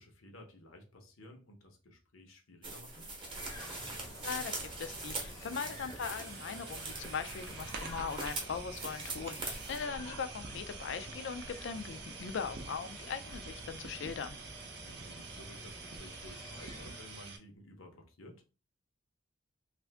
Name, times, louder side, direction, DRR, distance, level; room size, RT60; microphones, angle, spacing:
voice 1, 0.0-3.1 5.3-5.8 14.8-18.4, left 1 dB, 80° left, 0.8 m, -54 dB
sound 1, 2.6-9.8, right 3 dB, 25° right, 0.8 m, -43 dB
sound 2, 3.1-17.3, equal, 15° left, 0.6 m, -50 dB
voice 2, 4.2-14.4, left 6 dB, 60° left, 0.3 m, -40 dB
sound 3, 6.0-17.4, right 3 dB, 50° right, 0.6 m, -47 dB
2.5 x 2.5 x 3.3 m
head